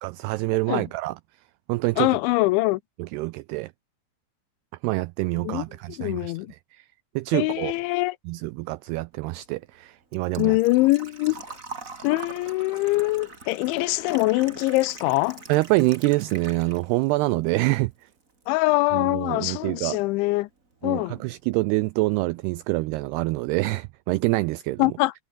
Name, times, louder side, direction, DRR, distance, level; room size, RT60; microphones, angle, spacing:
voice 1, 0.0-1.1 1.7-2.1 3.0-3.7 4.8-6.3 6.7-6.9 7.2-7.7 8.3-10.6 15.5-17.9 18.9-20.0 20.8-24.8, right 21 dB, 90° right, 2.3 m, -26 dB
voice 2, 2.0-2.8 5.4-5.6 6.0-6.5 7.3-8.2 10.4-11.4 12.0-15.4 18.5-20.5 20.8-21.2 24.8-25.1, left 20 dB, 90° left, 3.1 m, -23 dB
Engine / Trickle dribble / Fill (with liquid), 9.2-17.1 17.4-18.4 18.7-18.8 20.7-20.8 21.0-21.3 21.7-21.8 22.0-22.1, right 4 dB, 25° right, 2.3 m, -43 dB
omnidirectional pair, 5.2 m